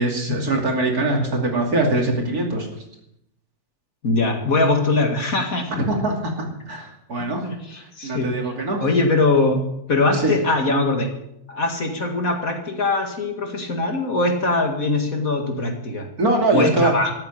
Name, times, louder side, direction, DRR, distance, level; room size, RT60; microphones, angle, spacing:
voice 1, 0.0-2.7 5.9-6.3 6.7-7.5 8.0-8.8 10.2-10.3 16.2-16.9, right 2 dB, 50° right, 1 dB, 3.1 m, -22 dB
voice 2, 4.0-5.9 7.2-8.5 8.8-9.6 9.9-11.1 11.5-16.1 16.5-17.1, left 2 dB, 50° left, 3 dB, 2.4 m, -22 dB
14.0 x 8.7 x 9.0 m, 0.80 s
omnidirectional pair, 2.0 m